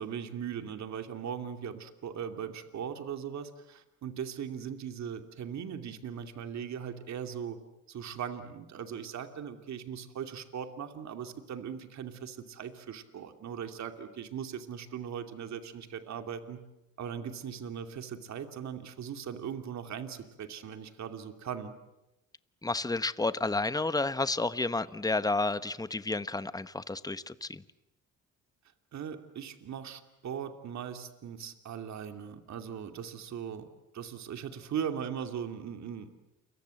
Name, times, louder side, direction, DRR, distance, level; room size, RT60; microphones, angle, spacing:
voice 1, 0.0-7.6 7.9-16.6 17.0-21.8 28.9-33.7 33.9-36.1, right 8 dB, 65° right, 7 dB, 2.7 m, -39 dB
voice 2, 22.6-27.6, left 3 dB, 10° left, 14 dB, 1.1 m, -31 dB
29.0 x 23.5 x 7.8 m, 0.94 s
cardioid pair, 90°, 30 cm